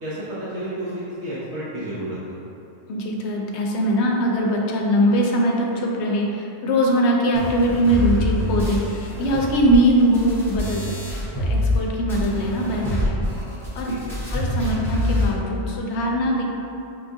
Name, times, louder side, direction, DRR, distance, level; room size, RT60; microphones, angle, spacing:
voice 1, 0.0-0.9 1.2-2.4 13.9-14.2, right 1 dB, 75° right, -11 dB, 1.1 m, -31 dB
voice 2, 2.9-11.0 11.4-13.2 13.8-13.9 14.3-16.5, equal, 75° left, -1 dB, 0.8 m, -21 dB
sound 1, 7.3-11.8 12.1-15.3, left 1 dB, ahead, 0.8 m, -25 dB
5.7 x 2.3 x 2.6 m, 2.8 s
omnidirectional pair, 1.2 m